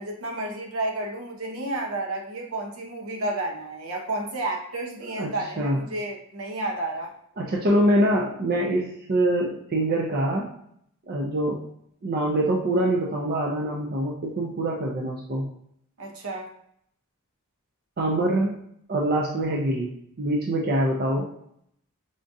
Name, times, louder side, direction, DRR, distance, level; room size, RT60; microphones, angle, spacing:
voice 1, 0.0-7.1 16.0-16.5, right 2 dB, 70° right, 0 dB, 0.8 m, -31 dB
voice 2, 5.1-5.8 7.4-10.5 11.1-11.6 12.0-15.4 18.0-18.6 18.9-21.3, right 1 dB, 45° right, -2 dB, 0.5 m, -24 dB
5.0 x 2.3 x 2.6 m, 0.69 s
head